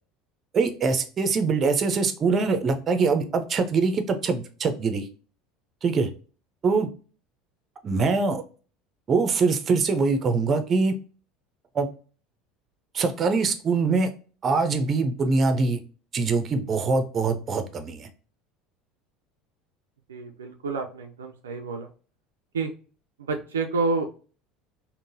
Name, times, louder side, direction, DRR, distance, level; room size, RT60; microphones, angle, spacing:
voice 1, 0.5-5.1 5.8-6.1 6.6-6.9 7.8-8.4 9.1-10.9 11.7-11.9 12.9-14.1 14.4-15.8 16.1-18.1, right 4 dB, 40° right, 9 dB, 0.6 m, -23 dB
voice 2, 20.1-21.9 22.5-22.7 23.2-24.1, right 3 dB, 85° right, 4 dB, 0.4 m, -29 dB
3.7 x 2.1 x 2.6 m, 0.38 s
hypercardioid pair, 75°, 0 cm